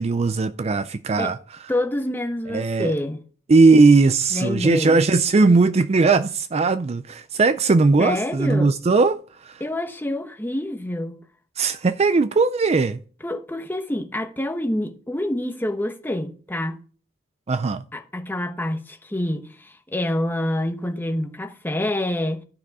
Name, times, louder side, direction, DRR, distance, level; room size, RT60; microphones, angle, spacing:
voice 1, 0.0-1.4 2.5-2.9 3.5-9.6 11.6-13.0 17.5-17.8, right 3 dB, 35° right, 0.4 m, -18 dB
voice 2, 1.7-3.3 4.3-5.0 8.0-8.7 9.6-11.2 13.2-16.8 17.9-22.4, left 1 dB, 10° left, 1.1 m, -27 dB
13.0 x 6.3 x 4.7 m
head